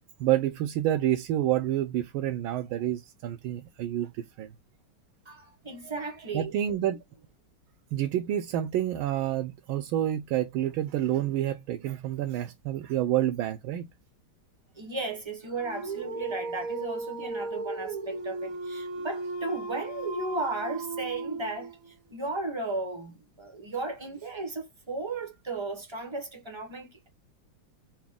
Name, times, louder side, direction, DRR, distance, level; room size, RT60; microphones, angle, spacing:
voice 1, 0.2-4.5 6.3-7.0 7.9-13.9, right 12 dB, 80° right, 1.4 m, -28 dB
voice 2, 5.2-6.5 14.8-21.7 22.1-27.1, right 2 dB, 30° right, 0.5 m, -35 dB
Dog, 15.5-21.9, right 3 dB, 60° right, 0.9 m, -36 dB
4.0 x 2.9 x 3.5 m
omnidirectional pair, 2.3 m